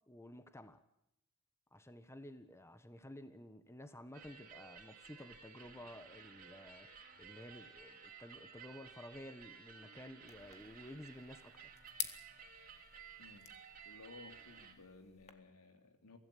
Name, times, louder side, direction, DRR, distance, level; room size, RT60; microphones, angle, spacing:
voice 1, 0.1-0.8 1.7-6.9 7.2-11.7, left 1 dB, 10° left, 1.3 m, -53 dB
sound 1, 4.1-14.7, right 6 dB, 40° right, 3.5 m, -56 dB
sound 2, 10.3-15.3, left 8 dB, 30° left, 1.8 m, -50 dB
voice 2, 13.2-13.5 13.8-16.2, left 3 dB, 80° left, 3.1 m, -57 dB
24.0 x 16.5 x 8.7 m
head